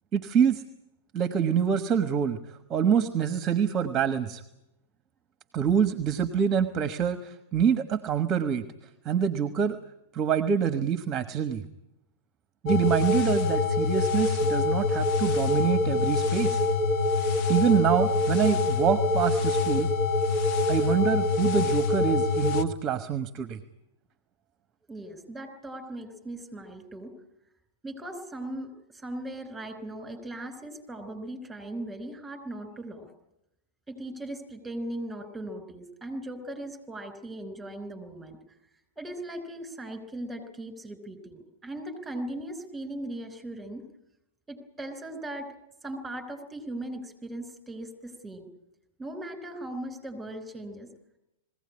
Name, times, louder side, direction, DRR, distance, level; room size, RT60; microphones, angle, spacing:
voice 1, 0.1-0.6 1.1-2.4 2.7-4.4 5.5-8.6 9.0-9.8 10.1-11.6 12.6-16.6 17.5-19.9 20.7-23.6, right 7 dB, 30° right, 10 dB, 1.3 m, -26 dB
sound 1, 12.7-22.6, left 3 dB, 40° left, 1.3 m, -25 dB
voice 2, 24.9-27.1 27.8-33.1 33.9-38.4 39.0-43.8 44.5-45.5 45.8-48.5 49.0-50.9, right 1 dB, 10° right, 7 dB, 5.1 m, -38 dB
21.0 x 16.5 x 9.9 m, 0.86 s
figure-of-eight pair, 105°, 0 cm